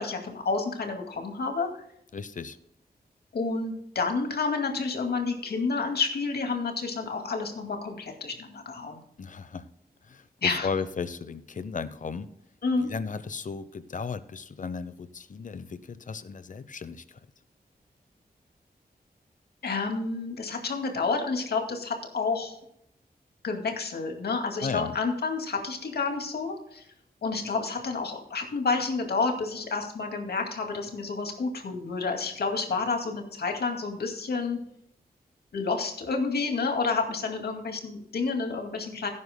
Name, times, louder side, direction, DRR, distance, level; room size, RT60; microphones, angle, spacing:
voice 1, 0.0-1.7 3.3-9.0 10.4-10.7 12.6-12.9 19.6-22.6 23.4-26.8 27.2-34.6 35.5-39.1, left 4 dB, 80° left, 3 dB, 2.2 m, -29 dB
voice 2, 2.1-2.6 9.2-9.7 10.1-12.3 12.8-17.2 24.6-25.0, left 5 dB, 50° left, 14 dB, 0.8 m, -35 dB
17.5 x 9.6 x 2.2 m, 0.75 s
wide cardioid pair, 130°, 16 cm